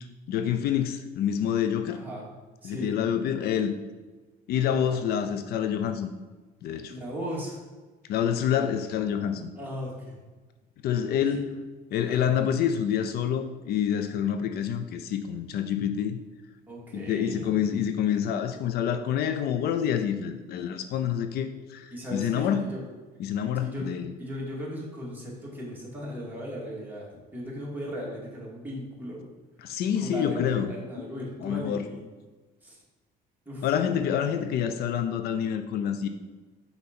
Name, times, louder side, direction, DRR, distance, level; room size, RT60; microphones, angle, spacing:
voice 1, 0.3-2.0 2.6-3.7 4.5-6.1 6.6-6.9 8.1-9.5 10.8-11.4 11.9-16.2 16.9-22.7 23.2-24.1 29.6-30.7 31.4-31.9 33.6-36.1, left 9 dB, 70° left, 8 dB, 0.5 m, -27 dB
voice 2, 1.9-2.2 2.6-3.0 4.7-5.0 6.9-7.6 9.6-10.2 11.2-11.4 12.1-12.4 16.7-17.6 21.9-22.8 23.4-23.9 24.2-29.2 30.0-32.0 32.6-32.8 33.5-33.7, equal, 10° right, -5 dB, 2.2 m, -37 dB
5.6 x 3.9 x 6.0 m, 1.3 s
cardioid pair, 110°, 17 cm